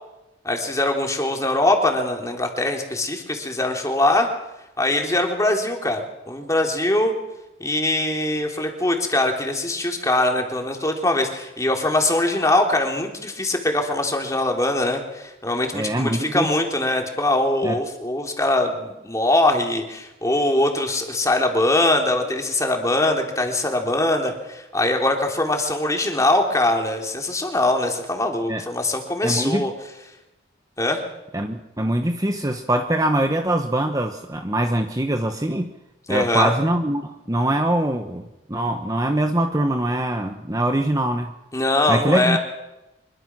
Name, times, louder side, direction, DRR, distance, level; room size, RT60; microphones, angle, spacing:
voice 1, 0.4-4.3 4.8-7.1 7.6-29.7 30.8-31.0 36.1-36.5 41.5-42.4, left 1 dB, 15° left, 2 dB, 3.3 m, -22 dB
voice 2, 15.7-16.5 17.6-17.8 28.5-28.6 29.2-29.7 31.3-35.7 36.1-41.3 41.9-42.4, right 1 dB, 20° right, 5 dB, 1.1 m, -23 dB
25.5 x 22.5 x 6.2 m, 0.96 s
head